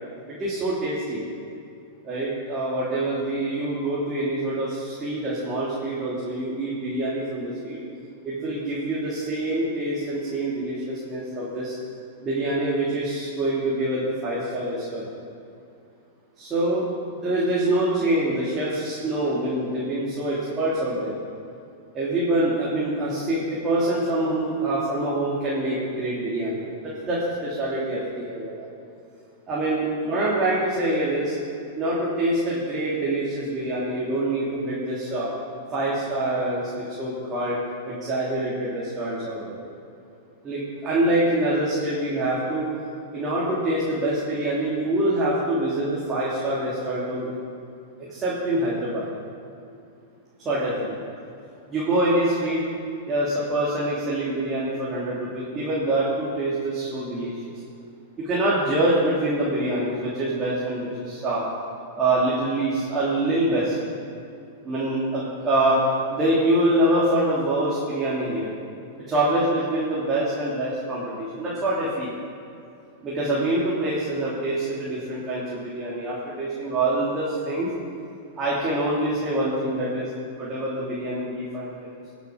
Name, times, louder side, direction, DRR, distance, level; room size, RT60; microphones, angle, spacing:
voice 1, 0.4-1.2 2.0-7.8 8.2-11.7 12.2-15.1 16.4-21.1 21.9-28.7 29.5-31.3 31.7-35.3 35.7-37.6 37.9-39.6 40.4-42.7 43.1-47.3 48.0-49.1 50.4-51.0 51.7-52.6 53.1-57.5 58.2-61.4 61.9-63.8 64.6-65.8 66.1-68.5 69.1-72.1 73.0-77.7 78.4-80.1 80.4-81.9, right 1 dB, 25° right, -7 dB, 3.1 m, -25 dB
20.5 x 7.1 x 5.3 m, 2.5 s
hypercardioid pair, 110°, 0 cm